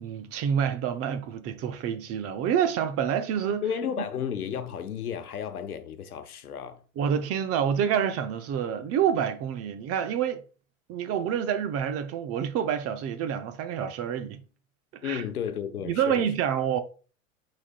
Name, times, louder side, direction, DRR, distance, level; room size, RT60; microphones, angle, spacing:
voice 1, 0.0-3.6 7.0-10.4 10.9-14.4 15.0-15.2 15.9-16.8, right 8 dB, 35° right, 0.8 m, -27 dB
voice 2, 3.6-6.8 15.0-16.3, left 8 dB, 90° left, 0.9 m, -33 dB
9.7 x 4.3 x 2.3 m
hypercardioid pair, 100°, 43 cm